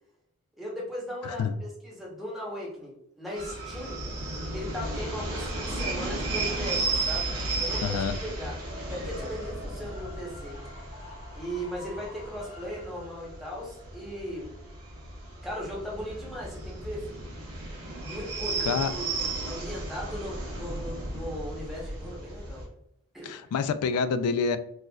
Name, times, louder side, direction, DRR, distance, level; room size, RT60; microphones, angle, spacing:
voice 1, 0.6-4.0 4.5-8.6 8.9-10.6 11.3-14.5 15.4-17.2 17.9-19.1 19.5-22.6 23.1-23.4, equal, ahead, -5 dB, 0.9 m, -38 dB
voice 2, 1.2-1.6 7.8-8.2 18.7-18.9 23.2-24.6, left 5 dB, 80° left, 13 dB, 0.3 m, -27 dB
sound 1, 3.4-22.7, right 2 dB, 90° right, 1.2 m, -34 dB
sound 2, 7.4-17.6, left 1 dB, 55° left, 1.0 m, -49 dB
4.2 x 2.4 x 2.3 m, 0.76 s
head